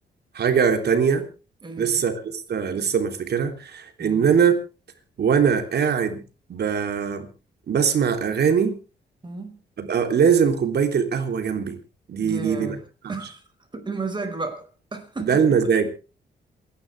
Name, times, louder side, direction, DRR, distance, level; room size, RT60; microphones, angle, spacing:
voice 1, 0.3-1.3 1.8-4.5 5.2-6.2 6.5-7.3 7.7-8.8 9.8-11.8 12.1-12.8 15.2-15.9, right 7 dB, 65° right, 3.3 m, -21 dB
voice 2, 1.6-2.1 4.0-4.3 9.2-9.6 12.2-12.8 13.1-13.4 13.7-15.4, right 3 dB, 25° right, 5.2 m, -33 dB
28.0 x 11.5 x 3.5 m
cardioid pair, 100°, 18 cm